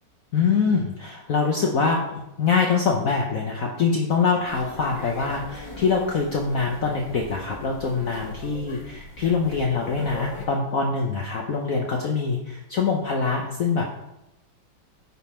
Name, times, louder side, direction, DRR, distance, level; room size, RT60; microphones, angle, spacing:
voice 1, 0.3-14.0, left 5 dB, 60° left, 0 dB, 1.0 m, -24 dB
sound 1, 4.4-10.5, left 2 dB, 40° left, 0.4 m, -40 dB
10.0 x 3.8 x 4.3 m, 0.88 s
omnidirectional pair, 2.1 m